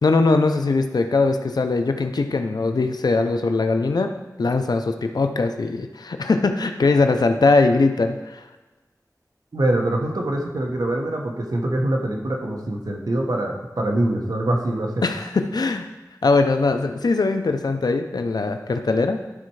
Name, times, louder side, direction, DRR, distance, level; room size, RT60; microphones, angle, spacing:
voice 1, 0.0-4.1 4.4-8.4 15.0-15.9 16.2-19.2, left 3 dB, 90° left, 6 dB, 0.6 m, -21 dB
voice 2, 9.5-15.0, right 1 dB, 70° right, 1 dB, 1.3 m, -24 dB
12.0 x 4.3 x 4.8 m, 1.2 s
wide cardioid pair, 60°, 7 cm